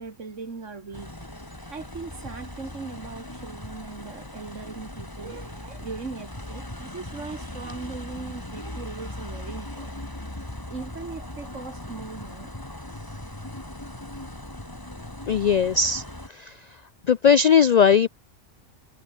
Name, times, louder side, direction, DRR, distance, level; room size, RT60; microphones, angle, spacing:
voice 1, 0.0-1.4 1.7-9.9 10.7-12.5, right 4 dB, 75° right, 2.7 m, -39 dB
sound 1, 0.9-16.3, left 1 dB, 15° left, 2.8 m, -39 dB
voice 2, 15.3-16.0 16.3-16.6 17.1-18.1, left 6 dB, 90° left, 0.3 m, -18 dB
omnidirectional pair, 1.3 m